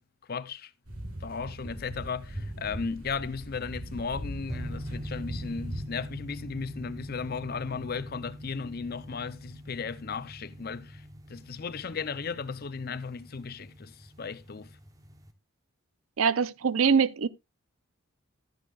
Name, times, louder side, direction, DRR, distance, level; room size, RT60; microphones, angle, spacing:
voice 1, 0.3-0.7 1.2-11.0 11.3-14.7, left 5 dB, 45° left, 0.5 m, -36 dB
sound 1, 0.9-5.8, equal, 90° right, 6.4 m, -39 dB
sound 2, 4.5-15.3, equal, 15° right, 1.0 m, -43 dB
voice 2, 16.2-17.3, right 6 dB, 70° right, 0.6 m, -23 dB
13.0 x 10.0 x 2.4 m
head